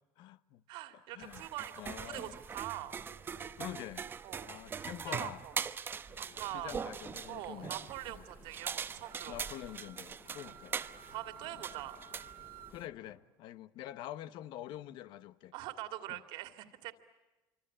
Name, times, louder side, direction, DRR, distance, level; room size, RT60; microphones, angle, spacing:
voice 1, 0.2-0.6 1.1-1.5 1.8-2.4 3.6-4.1 4.4-5.4 6.5-7.8 8.1-8.2 9.3-10.8 11.5-11.7 12.7-15.5 16.1-16.2, left 13 dB, 65° left, 0.9 m, -46 dB
voice 2, 0.7-3.0 4.2-4.5 5.1-5.5 6.2-6.7 7.3-9.3 10.4-10.6 11.1-12.0 15.5-16.9, right 14 dB, 75° right, 2.5 m, -43 dB
sound 1, 1.2-12.9, right 6 dB, 25° right, 0.9 m, -42 dB
abandoned warehouse, 6.1-13.2, left 6 dB, 45° left, 4.0 m, -61 dB
Wind instrument woodwind instrument, 9.0-12.7, right 11 dB, 55° right, 2.0 m, -54 dB
27.0 x 25.0 x 8.6 m
cardioid pair, 150°, 8 cm